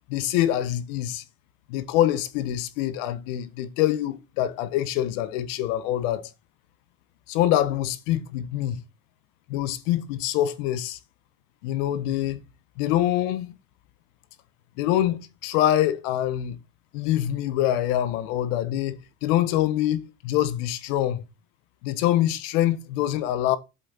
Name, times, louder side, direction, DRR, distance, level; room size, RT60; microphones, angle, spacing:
voice 1, 0.1-1.2 1.7-6.3 7.3-8.8 9.5-11.0 11.6-12.4 12.8-13.5 14.8-16.6 16.9-21.2 21.8-23.6, left 12 dB, 80° left, 1.4 m, -25 dB
8.3 x 7.5 x 4.1 m
supercardioid pair, 130°, 38 cm